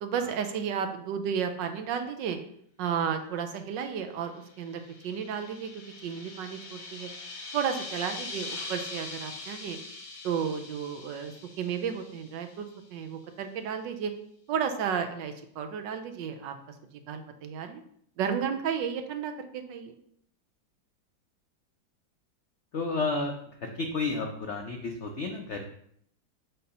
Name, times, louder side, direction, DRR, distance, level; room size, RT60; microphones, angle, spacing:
voice 1, 0.0-2.4 2.8-5.7 6.0-7.1 7.5-9.8 10.2-14.1 14.5-16.5 17.1-17.8 18.2-20.0, right 7 dB, 70° right, 7 dB, 1.3 m, -33 dB
sound 1, 4.4-12.7, left 3 dB, 75° left, 2.1 m, -42 dB
voice 2, 22.7-23.3 23.6-25.7, left 3 dB, 90° left, 3 dB, 0.6 m, -31 dB
7.6 x 2.8 x 5.4 m, 0.67 s
omnidirectional pair, 2.1 m